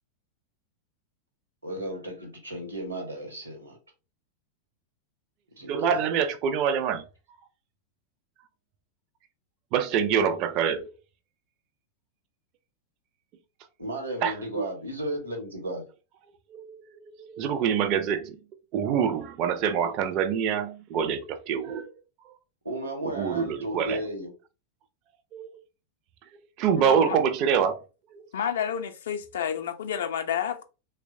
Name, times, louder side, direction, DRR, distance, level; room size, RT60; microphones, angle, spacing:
voice 1, 1.6-3.8 5.5-6.0 13.8-15.8 22.6-24.3, right 1 dB, 80° right, 0.9 m, -34 dB
voice 2, 5.6-7.0 9.7-10.9 14.2-14.6 16.6-16.8 17.1-18.4 18.7-21.9 23.0-24.0 25.3-25.5 26.6-27.8 28.1-28.3, right 7 dB, 40° right, 0.4 m, -26 dB
voice 3, 28.3-30.6, left 8 dB, 60° left, 0.4 m, -30 dB
2.9 x 2.1 x 2.5 m
figure-of-eight pair, 90°, 0 cm